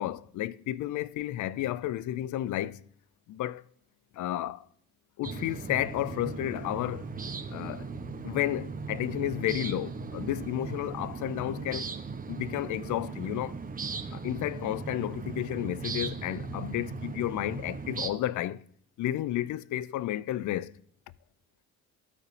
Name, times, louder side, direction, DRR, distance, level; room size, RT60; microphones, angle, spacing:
voice 1, 0.0-2.8 3.3-3.6 4.1-4.7 5.2-7.1 7.5-7.9 8.2-11.9 12.3-13.6 14.1-18.6 19.0-20.7, left 13 dB, 55° left, 0.4 m, -32 dB
sound 1, 5.2-18.1, right 4 dB, 25° right, 0.9 m, -38 dB
13.5 x 4.8 x 3.2 m
supercardioid pair, 60°, 36 cm